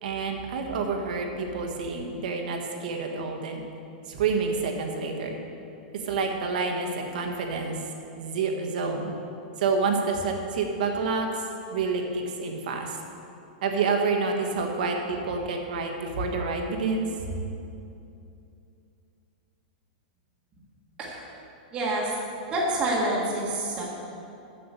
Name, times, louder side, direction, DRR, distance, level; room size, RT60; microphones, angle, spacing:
voice 1, 0.0-3.6 4.1-5.4 5.9-7.8 8.2-9.1 9.6-11.4 11.7-13.0 13.6-17.3, right 4 dB, 65° right, 3 dB, 1.5 m, -28 dB
voice 2, 21.7-22.1 22.5-23.8, right 1 dB, 20° right, -6 dB, 1.6 m, -27 dB
7.9 x 7.7 x 6.7 m, 2.7 s
supercardioid pair, 165°, 5 cm